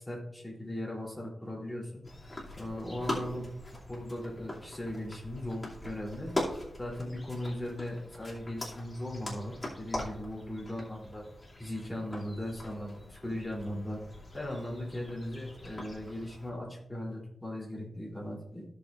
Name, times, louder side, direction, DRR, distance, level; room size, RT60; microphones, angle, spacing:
voice 1, 0.0-2.0 2.6-3.5 3.9-6.3 6.8-11.2 11.6-14.1 14.3-18.6, left 1 dB, 10° left, -4 dB, 3.3 m, -38 dB
sound 1, 2.0-16.5, left 1 dB, 25° left, 2.6 m, -42 dB
15.5 x 6.7 x 2.5 m, 0.81 s
wide cardioid pair, 130°, 0 cm